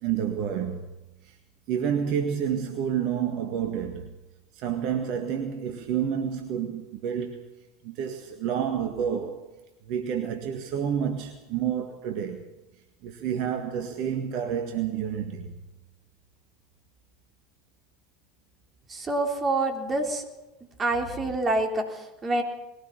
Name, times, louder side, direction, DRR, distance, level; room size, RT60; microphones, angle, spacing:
voice 1, 0.0-0.8 1.2-1.4 1.7-4.2 4.5-7.4 7.8-9.5 9.9-12.5 13.0-15.5, right 8 dB, 50° right, 1.8 m, -29 dB
voice 2, 18.9-20.2 20.8-22.4, right 2 dB, 25° right, 3.6 m, -27 dB
21.0 x 17.5 x 7.3 m
figure-of-eight pair, 75°, 0 cm